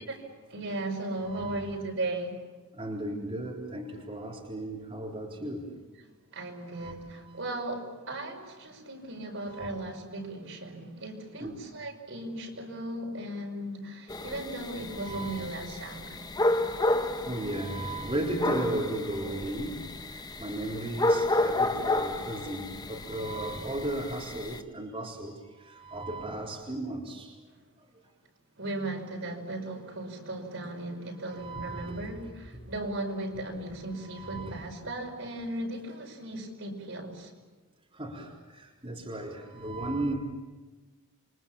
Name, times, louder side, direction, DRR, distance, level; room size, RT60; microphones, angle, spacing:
voice 1, 0.5-2.4 6.3-16.2 28.6-37.3, right 1 dB, 60° right, 1 dB, 5.5 m, -37 dB
voice 2, 1.2-1.7 2.7-5.9 6.8-6.9 7.2-7.4 9.4-9.7 11.4-11.6 14.9-15.7 16.4-19.8 20.1-27.4 31.3-32.2 32.5-32.7 34.0-34.6 37.9-40.1, right 1 dB, 25° right, -4 dB, 4.0 m, -36 dB
sound 1, 14.1-24.6, left 2 dB, 20° left, 1.0 m, -31 dB
29.0 x 24.5 x 7.3 m, 1.3 s
head